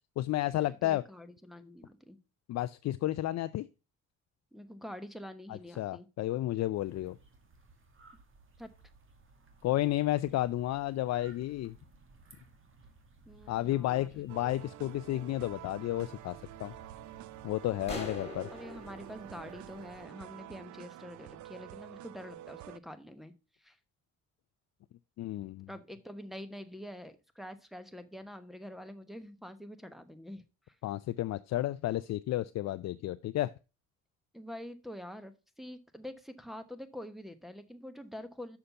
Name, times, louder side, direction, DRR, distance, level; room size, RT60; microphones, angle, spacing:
voice 1, 0.2-1.0 2.5-3.7 5.5-7.2 9.6-11.8 13.5-16.7 17.4-18.5 25.2-25.7 30.8-33.5, left 15 dB, 60° left, 13 dB, 0.4 m, -32 dB
voice 2, 0.8-2.2 4.5-6.1 8.6-8.7 13.3-14.3 18.5-23.3 23.6-23.8 25.7-30.8 34.3-38.6, left 1 dB, ahead, 6 dB, 1.1 m, -46 dB
sound 1, 6.7-20.1, right 3 dB, 45° right, 1.7 m, -58 dB
sound 2, 14.3-22.8, right 15 dB, 75° right, 0.5 m, -48 dB
sound 3, 17.9-20.5, left 2 dB, 20° left, 3.3 m, -44 dB
6.6 x 5.7 x 5.7 m, 0.30 s
cardioid pair, 90°, 30 cm